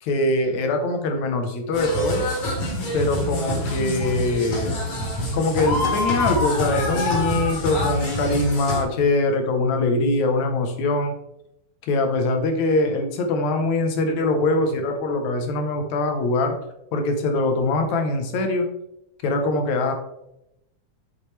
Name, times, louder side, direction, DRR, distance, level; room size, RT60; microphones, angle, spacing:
voice 1, 0.0-2.3 2.9-4.9 5.3-11.1 11.8-16.6 16.9-18.7 19.2-19.9, left 2 dB, 70° left, 5 dB, 2.3 m, -23 dB
sound 1, 1.7-8.8, left 1 dB, 45° left, 2.1 m, -25 dB
7.5 x 6.5 x 3.3 m, 0.83 s
omnidirectional pair, 3.5 m